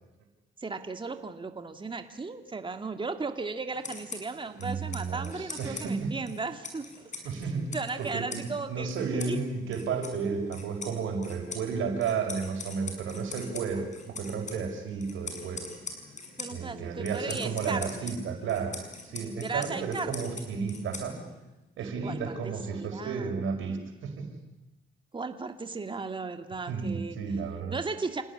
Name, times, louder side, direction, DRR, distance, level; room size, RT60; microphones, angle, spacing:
voice 1, 0.6-7.1 7.7-8.9 9.3-9.4 16.4-18.1 19.4-20.4 22.0-23.4 25.1-27.2 27.7-28.2, right 4 dB, 25° right, 7 dB, 2.3 m, -36 dB
sound 1, 3.7-21.5, left 3 dB, 35° left, 6.9 m, -44 dB
voice 2, 4.6-6.1 7.2-15.7 16.5-21.2 21.8-24.3 26.7-27.8, right 5 dB, 80° right, 4 dB, 5.7 m, -33 dB
28.5 x 18.5 x 9.9 m, 0.99 s
cardioid pair, 90°, 20 cm